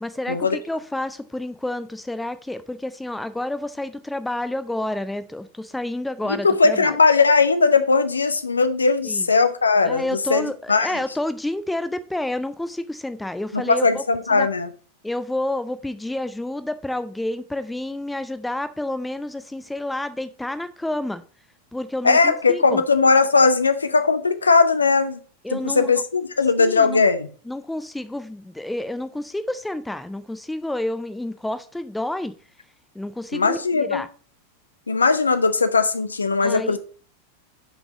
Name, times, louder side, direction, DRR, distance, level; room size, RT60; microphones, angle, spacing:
voice 1, 0.0-7.0 9.0-9.3 9.8-14.0 14.3-14.5 15.0-21.2 21.7-22.8 25.4-25.9 26.6-27.0 27.5-32.3 32.9-34.1 36.4-36.8, left 1 dB, 5° left, 0.5 m, -29 dB
voice 2, 6.4-10.9 13.5-14.7 22.0-25.2 25.5-27.3 33.3-34.0 34.9-36.8, left 4 dB, 75° left, 0.6 m, -19 dB
6.1 x 5.4 x 4.8 m
figure-of-eight pair, 90°, 0 cm